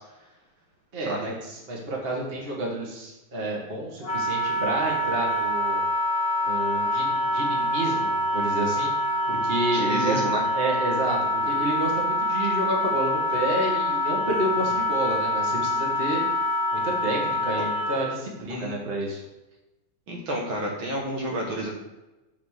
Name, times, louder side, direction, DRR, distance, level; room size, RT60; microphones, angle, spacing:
voice 1, 0.9-5.8 6.4-8.9 9.3-10.2 10.5-16.2 16.7-19.2, right 1 dB, 25° right, -2 dB, 1.9 m, -30 dB
Wind instrument woodwind instrument, 4.0-18.1, left 1 dB, 20° left, 1.3 m, -25 dB
voice 2, 9.7-10.4 18.5-18.8 20.1-21.7, right 1 dB, 65° right, -1 dB, 2.1 m, -30 dB
7.4 x 4.3 x 6.6 m, 1.0 s
omnidirectional pair, 2.4 m